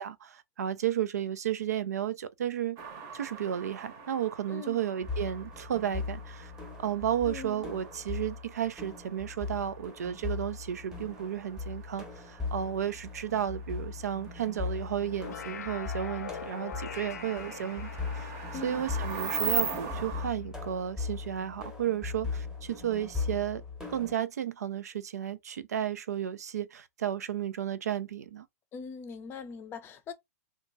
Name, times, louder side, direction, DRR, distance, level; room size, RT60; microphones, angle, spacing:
voice 1, 0.0-2.8 3.1-6.5 6.8-18.3 18.6-23.6 23.9-28.5, right 10 dB, 80° right, 0.4 m, -33 dB
sound 1, 2.8-20.3, right 5 dB, 40° right, 0.8 m, -41 dB
voice 2, 4.5-4.8 7.3-7.6 18.5-18.8 28.7-30.1, left 5 dB, 25° left, 0.5 m, -41 dB
sound 2, 5.0-24.1, left 4 dB, 5° right, 0.9 m, -39 dB
sound 3, 15.0-20.5, left 7 dB, 85° left, 0.5 m, -44 dB
2.9 x 2.3 x 2.6 m
hypercardioid pair, 125°, 9 cm